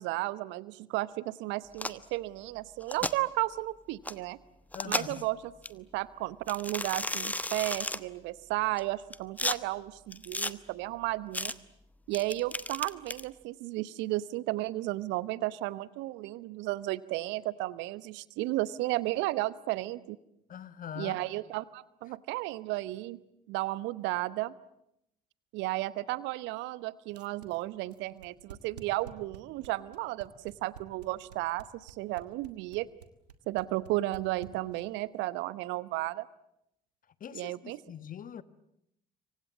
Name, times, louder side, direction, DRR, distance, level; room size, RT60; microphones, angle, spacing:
voice 1, 0.0-4.4 4.8-11.5 12.1-20.2 21.0-23.2 23.5-24.5 25.5-32.9 33.5-36.3 37.3-37.8, right 18 dB, 65° right, 0.9 m, -33 dB
sound 1, 1.7-2.1 2.8-3.1 4.1-4.2 4.7-5.2 5.6-5.7 6.5-8.0 8.8-9.6 10.1-10.5 11.3-11.5 12.1-13.2, left 1 dB, 10° left, 1.1 m, -33 dB
voice 2, 4.7-5.3 20.5-21.2 37.2-38.4, left 8 dB, 45° left, 1.3 m, -42 dB
sound 2, 27.1-35.0, right 9 dB, 85° right, 1.4 m, -49 dB
27.5 x 24.5 x 7.4 m
figure-of-eight pair, 50°, 20 cm